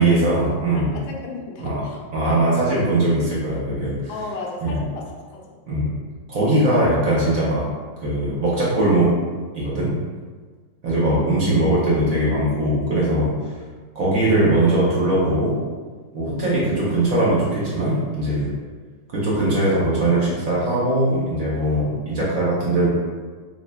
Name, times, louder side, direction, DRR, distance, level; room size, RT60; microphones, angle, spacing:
voice 1, 0.0-1.0 1.6-1.8 2.1-3.9 4.6-4.8 5.7-5.9 6.3-7.6 8.0-9.1 9.5-9.9 10.8-13.3 13.9-15.5 16.1-18.5 19.1-22.9, right 1 dB, 55° right, -7 dB, 1.1 m, -20 dB
voice 2, 0.7-2.7 4.1-6.0 11.0-11.7, left 2 dB, 90° left, -1 dB, 1.4 m, -35 dB
3.8 x 3.3 x 2.2 m, 1.5 s
omnidirectional pair, 2.0 m